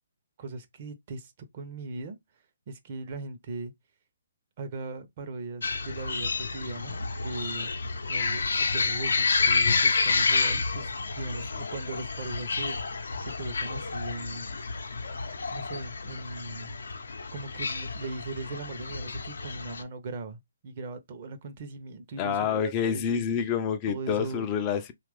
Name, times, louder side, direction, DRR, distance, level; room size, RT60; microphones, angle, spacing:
voice 1, 0.4-2.2 2.7-3.7 4.6-7.7 8.1-10.9 11.2-15.0 15.5-16.7 17.3-23.3 23.9-24.5, right 3 dB, 45° right, 0.7 m, -39 dB
sound 1, 5.6-19.8, left 4 dB, 80° left, 0.6 m, -29 dB
voice 2, 22.2-24.9, left 7 dB, 25° left, 0.4 m, -28 dB
2.9 x 2.4 x 3.4 m
hypercardioid pair, 150°, 0 cm